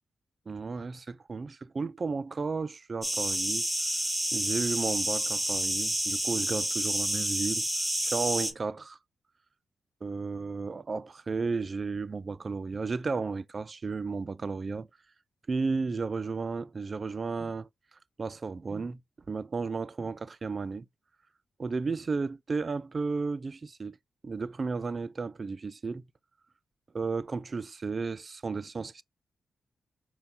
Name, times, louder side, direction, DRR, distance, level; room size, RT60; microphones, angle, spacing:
voice 1, 0.5-3.7 4.3-7.7 8.0-9.0 10.0-14.9 15.5-17.7 18.2-19.0 19.3-20.9 21.6-24.0 24.2-26.0 26.9-29.0, right 4 dB, 45° right, 0.4 m, -33 dB
sound 1, 3.0-8.5, right 1 dB, 5° right, 1.1 m, -29 dB
5.3 x 2.3 x 3.7 m
supercardioid pair, 40°, 0 cm